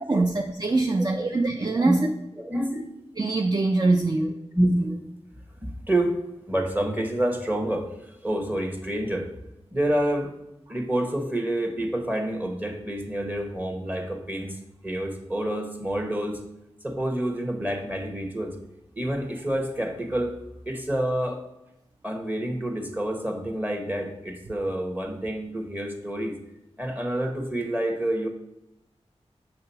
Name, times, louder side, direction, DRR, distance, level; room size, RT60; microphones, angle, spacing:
voice 1, 0.1-2.1 3.2-4.4, right 3 dB, 40° right, 3 dB, 0.5 m, -23 dB
voice 2, 0.9-1.3 1.7-2.1 2.4-2.9 4.5-5.1 5.6-6.2 6.5-9.3 9.7-10.3 10.7-16.4 16.8-18.6 19.0-20.4 20.7-21.4 22.0-26.4 26.8-28.3, right 1 dB, 15° right, 3 dB, 1.1 m, -28 dB
6.8 x 2.9 x 5.5 m, 0.86 s
wide cardioid pair, 50°, 11 cm